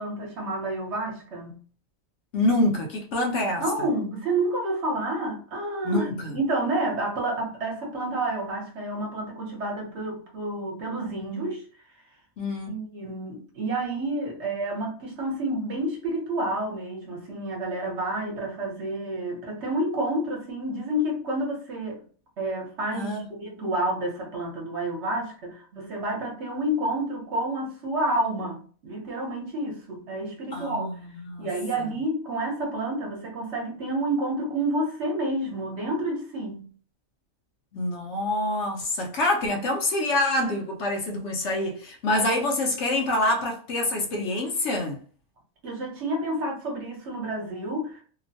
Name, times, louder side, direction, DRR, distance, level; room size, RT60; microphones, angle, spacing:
voice 1, 0.0-1.6 3.4-6.1 6.3-11.6 12.7-22.0 22.4-30.9 31.4-36.7 45.6-48.0, right 1 dB, 60° right, 1.1 m, -29 dB
voice 2, 2.3-3.9 5.8-6.4 12.4-12.8 22.9-23.2 30.5-31.5 31.8-31.9 37.7-45.0, left 1 dB, 65° left, 0.9 m, -26 dB
2.9 x 2.1 x 2.6 m
omnidirectional pair, 1.4 m